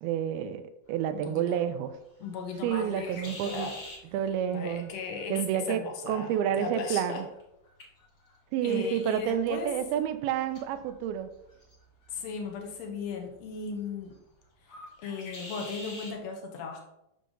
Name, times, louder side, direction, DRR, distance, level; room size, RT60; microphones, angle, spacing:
voice 1, 0.0-0.6 0.9-1.9 2.6-3.7 4.1-4.9 5.3-5.8 6.1-7.3 8.5-11.3, right 9 dB, 85° right, 10 dB, 2.5 m, -29 dB
sound 1, 0.8-16.2, left 2 dB, 50° left, 1.1 m, -50 dB
voice 2, 1.2-1.6 2.2-3.8 4.5-7.2 8.6-9.8 12.1-14.2 15.0-16.8, left 5 dB, 80° left, 2 dB, 1.5 m, -37 dB
6.8 x 6.3 x 3.8 m, 0.85 s
omnidirectional pair, 4.2 m